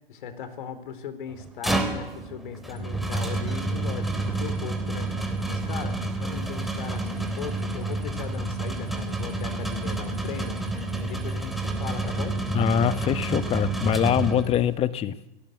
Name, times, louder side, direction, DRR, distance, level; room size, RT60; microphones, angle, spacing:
voice 1, 0.1-5.1 5.5-10.6 10.9-12.4, left 7 dB, 55° left, 4.0 m, -38 dB
sound 1, 1.3-14.8, right 2 dB, ahead, 3.6 m, -29 dB
voice 2, 12.5-15.2, left 10 dB, 20° left, 1.1 m, -24 dB
29.5 x 18.5 x 8.1 m
hypercardioid pair, 120°, 30 cm